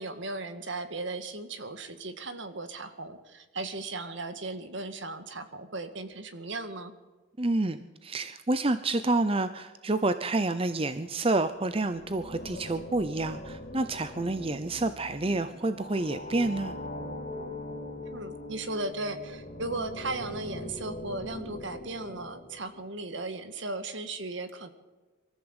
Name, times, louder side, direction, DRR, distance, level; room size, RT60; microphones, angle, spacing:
voice 1, 0.0-6.9 18.0-24.7, right 2 dB, 60° right, 9 dB, 1.9 m, -36 dB
voice 2, 7.4-16.7, right 2 dB, 25° right, 11 dB, 0.7 m, -28 dB
sound 1, 11.6-22.8, left 1 dB, 40° left, 2.2 m, -41 dB
24.0 x 14.0 x 8.1 m, 1.2 s
head